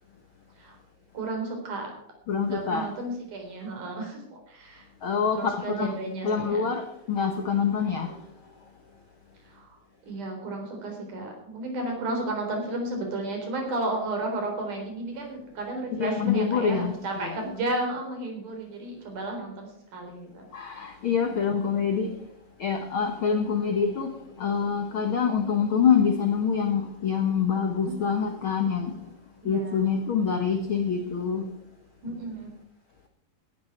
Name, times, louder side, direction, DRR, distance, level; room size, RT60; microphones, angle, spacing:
voice 1, 1.1-1.9 2.5-4.9 5.3-6.7 9.5-9.8 10.1-20.4 21.5-21.6 23.4-23.8 27.8-28.1 29.4-29.9 32.0-32.5, right 2 dB, 55° right, 5.2 m, -33 dB
voice 2, 2.3-2.9 5.0-5.9 6.2-8.2 15.9-17.4 20.5-22.1 22.6-24.1 24.4-28.9 29.4-31.5, left 6 dB, 85° left, 1.1 m, -26 dB
16.5 x 12.0 x 4.6 m
omnidirectional pair, 4.3 m